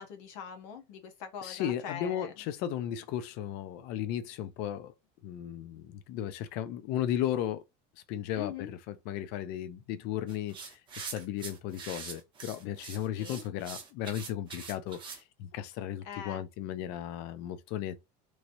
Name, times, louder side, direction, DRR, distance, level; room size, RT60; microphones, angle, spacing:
voice 1, 0.0-2.3 8.3-8.7 13.1-13.4 16.0-16.4, left 7 dB, 75° left, 0.9 m, -42 dB
voice 2, 1.4-4.9 5.2-7.6 8.1-18.0, left 11 dB, 55° left, 0.4 m, -35 dB
sound 1, 10.3-15.2, right 5 dB, 25° right, 0.8 m, -43 dB
3.0 x 2.8 x 2.6 m
cardioid pair, 175°, 21 cm